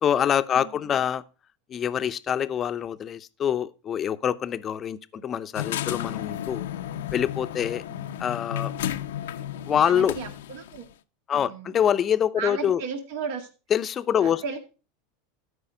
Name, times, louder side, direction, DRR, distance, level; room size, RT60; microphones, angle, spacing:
voice 1, 0.0-1.2 1.7-6.7 7.1-7.8 8.2-8.7 9.7-10.1 11.3-12.8 13.7-14.6, left 9 dB, 30° left, 0.6 m, -25 dB
voice 2, 0.5-1.0 5.2-5.3 7.9-8.1 9.2-10.9 11.3-11.8 12.4-13.5 14.2-14.6, right 6 dB, 70° right, 1.9 m, -36 dB
sound 1, 5.5-10.8, left 11 dB, 80° left, 0.6 m, -33 dB
13.0 x 5.0 x 5.0 m
hypercardioid pair, 110°, 0 cm